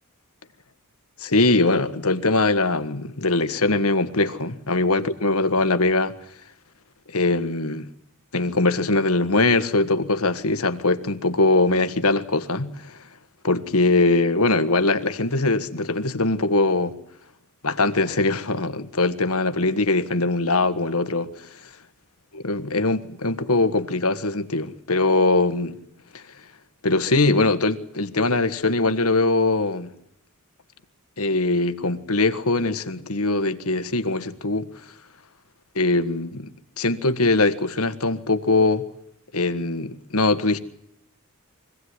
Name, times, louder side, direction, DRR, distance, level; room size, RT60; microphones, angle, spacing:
voice 1, 1.2-6.1 7.1-7.9 8.3-13.0 13.4-16.9 17.6-21.7 22.3-25.8 26.1-26.2 26.8-29.9 31.2-34.7 35.7-36.5 36.8-38.8 39.3-40.6, left 2 dB, 75° left, 1.6 m, -22 dB
25.0 x 17.5 x 9.8 m
head